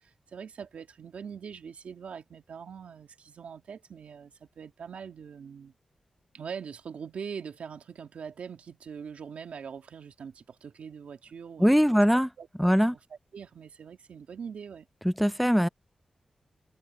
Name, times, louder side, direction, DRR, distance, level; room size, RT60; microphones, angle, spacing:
voice 1, 0.0-5.7 6.3-12.0 12.4-12.8 13.3-14.9, right 6 dB, 85° right, 2.3 m, -42 dB
voice 2, 11.6-12.3 12.6-13.0 15.0-15.7, equal, ahead, 0.3 m, -22 dB
wide cardioid pair, 160°, 2 cm